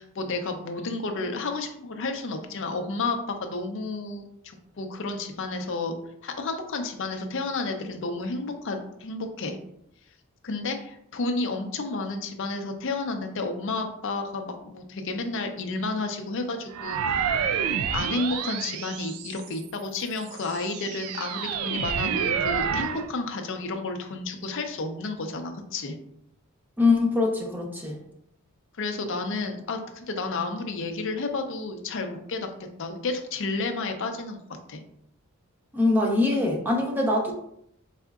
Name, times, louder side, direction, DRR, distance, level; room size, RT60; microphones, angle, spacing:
voice 1, 0.0-5.9 6.2-9.6 10.4-17.4 17.9-26.0 28.8-32.5 32.8-34.4 34.7-34.8, left 3 dB, 60° left, 5 dB, 0.6 m, -31 dB
sound 1, 16.7-19.6 20.2-23.1, right 7 dB, 80° right, 0.3 m, -29 dB
voice 2, 26.8-28.0 35.7-37.3, left 3 dB, 10° right, -1 dB, 0.7 m, -23 dB
4.1 x 3.6 x 2.4 m, 0.73 s
head